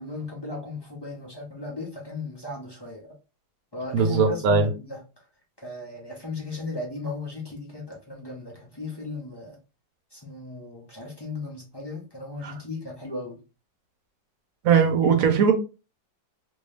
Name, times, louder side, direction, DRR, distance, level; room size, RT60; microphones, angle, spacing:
voice 1, 0.0-3.2 3.7-5.0 5.6-9.6 10.1-13.4, left 2 dB, 40° left, 0.3 m, -36 dB
voice 2, 3.9-4.7 12.4-12.5 14.6-15.5, right 6 dB, 60° right, 1.0 m, -20 dB
3.0 x 2.7 x 3.2 m
omnidirectional pair, 2.0 m